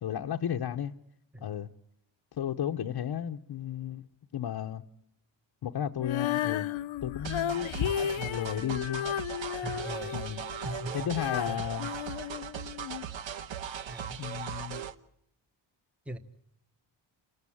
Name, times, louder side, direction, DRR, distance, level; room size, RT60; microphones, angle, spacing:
voice 1, 0.0-0.9 1.4-1.7 2.4-4.1 4.3-4.8 5.6-6.7 7.0-7.8 8.0-9.1 10.1-10.4 10.9-11.9 14.2-14.8, left 10 dB, 55° left, 0.9 m, -33 dB
Female singing, 6.0-13.0, left 10 dB, 90° left, 0.9 m, -34 dB
sound 1, 7.2-14.9, right 8 dB, 75° right, 1.2 m, -39 dB
voice 2, 9.5-10.2 10.6-10.9 11.5-11.6 13.9-14.2 16.1-16.2, right 1 dB, 5° right, 1.1 m, -40 dB
29.0 x 13.5 x 9.9 m
wide cardioid pair, 170°, 46 cm